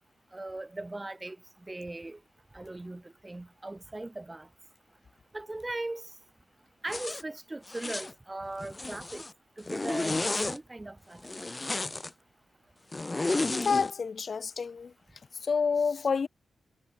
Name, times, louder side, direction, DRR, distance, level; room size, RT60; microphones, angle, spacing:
voice 1, 0.3-1.4 1.7-2.2 2.5-4.5 5.3-6.1 6.8-9.2 9.6-11.2 11.7-11.8, right 2 dB, 20° right, 3.0 m, -39 dB
Zipper (clothing), 6.9-7.2 7.7-8.1 8.6-9.3 9.7-10.6 11.2-12.1 12.9-13.9, left 2 dB, 25° left, 2.1 m, -32 dB
voice 2, 13.5-14.9 15.4-16.3, left 5 dB, 55° left, 0.9 m, -28 dB
cardioid pair, 55°, 0 cm